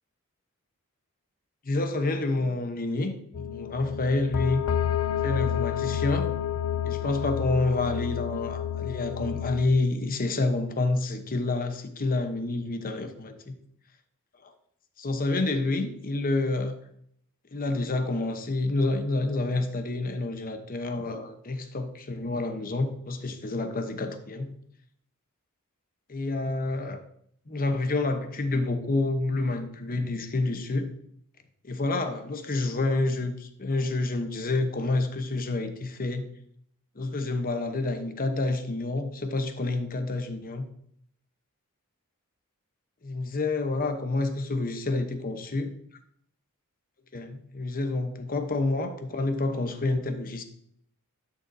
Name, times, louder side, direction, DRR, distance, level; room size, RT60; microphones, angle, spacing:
voice 1, 1.6-4.6 5.2-6.3 6.8-13.6 14.4-14.5 15.0-16.8 17.5-24.5 26.1-27.0 27.5-30.9 31.6-36.3 36.9-40.7 43.0-45.7 47.1-50.4, left 2 dB, 40° left, 7 dB, 0.9 m, -28 dB
sound 1, 3.3-9.7, left 9 dB, 70° left, 0.4 m, -29 dB
11.0 x 6.7 x 2.7 m, 0.67 s
head